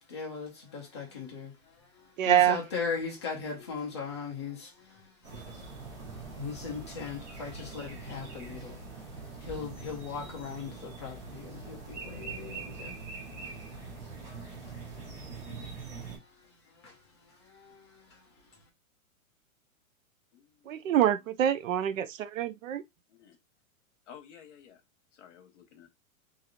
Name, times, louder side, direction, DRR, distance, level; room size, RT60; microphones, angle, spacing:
voice 1, 0.1-13.8 14.3-15.1 15.5-18.6, left 5 dB, 20° left, 0.5 m, -40 dB
voice 2, 2.2-2.6 20.7-22.8, right 11 dB, 65° right, 0.5 m, -26 dB
sound 1, 5.2-16.2, right 4 dB, 35° right, 1.0 m, -43 dB
voice 3, 20.3-20.9 23.1-23.4 24.1-24.8 25.1-25.9, left 8 dB, 55° left, 1.1 m, -54 dB
2.9 x 2.7 x 2.4 m
hypercardioid pair, 175°, 43 cm